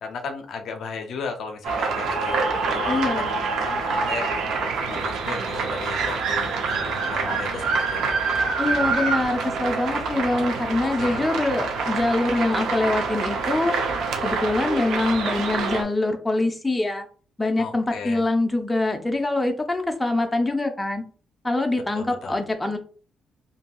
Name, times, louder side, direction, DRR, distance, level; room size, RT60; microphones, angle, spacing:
voice 1, 0.0-2.4 2.7-3.1 3.5-4.3 4.8-8.3 10.8-11.2 17.6-18.2 21.9-22.4, left 5 dB, 65° left, 5 dB, 0.5 m, -35 dB
sound 1, 1.6-15.8, right 4 dB, 80° right, 0.5 m, -26 dB
voice 2, 2.9-3.5 8.6-13.7 14.2-17.1 17.4-21.0 21.4-22.8, left 2 dB, 15° left, 4 dB, 0.5 m, -24 dB
2.7 x 2.6 x 2.3 m, 0.41 s
cardioid pair, 90°, 0 cm